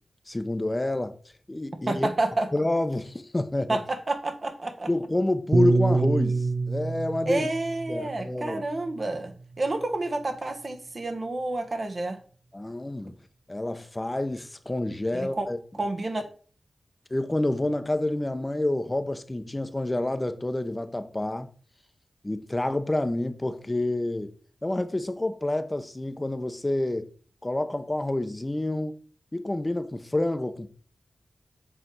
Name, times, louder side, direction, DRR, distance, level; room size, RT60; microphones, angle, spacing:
voice 1, 0.3-1.1 1.5-2.1 2.5-3.8 4.9-7.5 7.9-8.6 12.5-13.1 13.5-15.6 17.1-21.5 22.2-24.3 24.6-27.1 27.4-29.0 29.3-30.7, left 1 dB, 25° left, 0.8 m, -28 dB
voice 2, 1.9-2.5 3.7-4.9 7.3-9.3 9.6-12.2 15.1-15.5 15.8-16.2, right 2 dB, 50° right, 1.3 m, -29 dB
Piano, 5.5-10.0, right 3 dB, 80° right, 0.8 m, -27 dB
7.7 x 3.4 x 6.1 m
cardioid pair, 50°, 0 cm